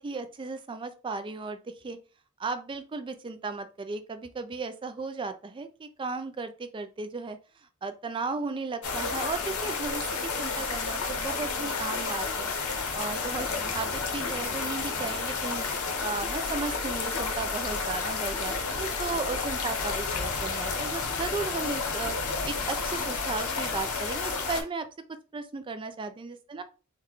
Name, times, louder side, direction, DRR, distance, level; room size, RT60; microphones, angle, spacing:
voice 1, 0.0-2.0 2.4-7.4 7.8-12.5 12.9-15.7 16.0-22.1 22.5-24.9 25.3-26.6, right 4 dB, 25° right, 9 dB, 0.3 m, -35 dB
sound 1, 8.8-24.6, left 4 dB, 75° left, 0.7 m, -31 dB
3.7 x 2.2 x 3.0 m, 0.34 s
head